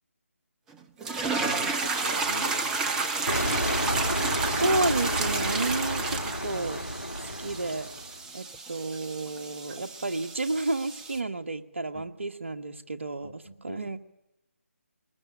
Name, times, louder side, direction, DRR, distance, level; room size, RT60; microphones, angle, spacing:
sound 1, 1.0-11.2, right 4 dB, 5° right, 0.8 m, -31 dB
voice 1, 1.4-3.4 7.3-7.5 11.9-12.1 13.2-13.8, left 1 dB, 70° left, 11 dB, 4.3 m, -42 dB
sound 2, 3.3-8.1, equal, 85° left, 2.0 m, -31 dB
voice 2, 4.5-6.8 7.2-7.9 8.3-14.0, right 2 dB, 55° right, 8 dB, 1.6 m, -31 dB
21.5 x 21.5 x 9.0 m, 0.94 s
figure-of-eight pair, 150°, 8 cm